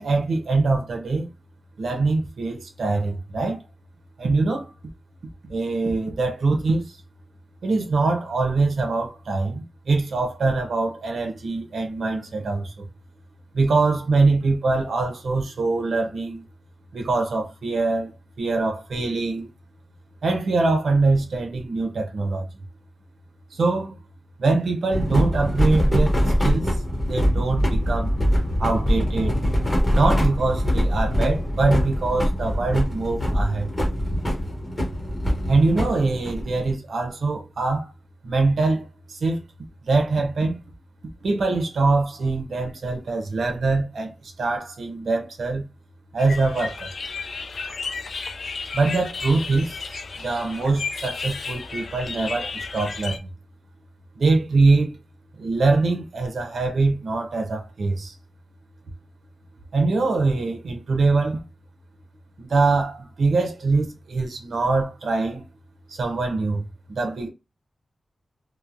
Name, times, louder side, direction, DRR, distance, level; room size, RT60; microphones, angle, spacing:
voice 1, 0.0-1.3 1.8-3.6 4.2-4.7 5.5-7.0 7.6-12.9 13.5-16.4 16.9-19.5 20.2-22.5 23.5-24.0 24.4-26.8 27.0-28.1 28.6-29.4 29.9-33.7 35.5-37.9 38.2-39.4 39.8-40.6 41.2-45.7 46.1-46.9 48.7-53.3 54.2-55.0 55.4-58.1 59.7-61.5 62.4-65.4 65.9-67.3, right 3 dB, 90° right, 0.8 m, -23 dB
sound 1, 24.9-36.7, equal, 15° left, 0.8 m, -23 dB
sound 2, 46.2-53.2, left 4 dB, 65° left, 0.3 m, -33 dB
3.0 x 2.1 x 2.5 m
wide cardioid pair, 155°, 0 cm